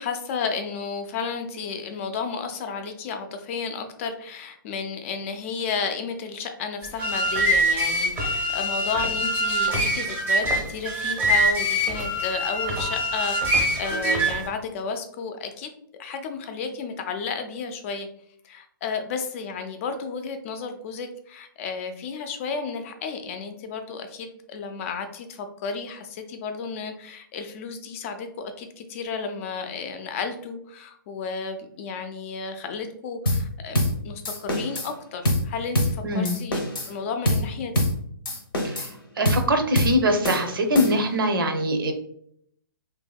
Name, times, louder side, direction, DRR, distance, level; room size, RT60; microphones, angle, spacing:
voice 1, 0.0-18.1 18.4-36.6 36.9-37.8, left 5 dB, 35° left, 7 dB, 0.4 m, -32 dB
sound 1, 6.8-14.5, right 1 dB, 15° right, 0.6 m, -24 dB
sound 2, 33.3-33.5 33.7-34.0 34.2-34.9 35.2-35.5 35.7-36.0 36.2-36.9 37.3-37.5 37.8-38.0 38.3-38.9 39.3-39.5 39.8-40.0 40.2-41.2, left 1 dB, 85° left, 0.8 m, -24 dB
voice 2, 36.0-36.3 38.6-38.9 39.2-41.9, equal, 75° right, 6 dB, 0.6 m, -23 dB
2.7 x 2.6 x 2.2 m, 0.68 s
hypercardioid pair, 130°, 12 cm